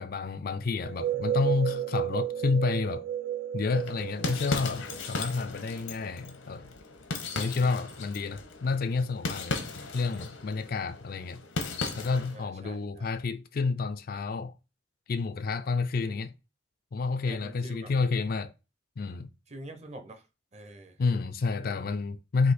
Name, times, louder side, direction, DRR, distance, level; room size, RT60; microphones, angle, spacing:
voice 1, 0.0-3.1 3.5-6.7 7.3-9.6 9.9-11.4 12.0-14.5 15.1-16.3 16.9-18.5 19.0-19.3 21.0-22.5, left 4 dB, 50° left, 0.4 m, -30 dB
sound 1, 0.8-5.4, right 11 dB, 75° right, 0.3 m, -32 dB
sound 2, 3.7-12.4, left 3 dB, 85° left, 0.9 m, -37 dB
voice 2, 12.3-13.1 16.0-16.2 17.3-17.9 19.5-20.3 20.5-21.0, right 1 dB, 35° right, 0.7 m, -46 dB
4.1 x 2.7 x 4.1 m
head